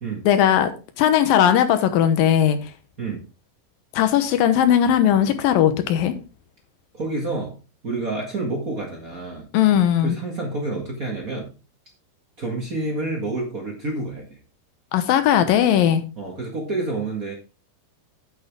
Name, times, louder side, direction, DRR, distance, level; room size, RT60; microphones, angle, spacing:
voice 1, 0.2-0.7 1.0-2.6 3.9-6.1 9.5-10.2 14.9-16.0, left 10 dB, 90° left, 9 dB, 2.8 m, -18 dB
voice 2, 6.9-7.5 7.8-9.5 10.0-11.5 12.4-14.4 16.2-17.3, right 2 dB, 30° right, 0 dB, 1.7 m, -28 dB
9.0 x 8.5 x 3.6 m, 0.32 s
omnidirectional pair, 3.9 m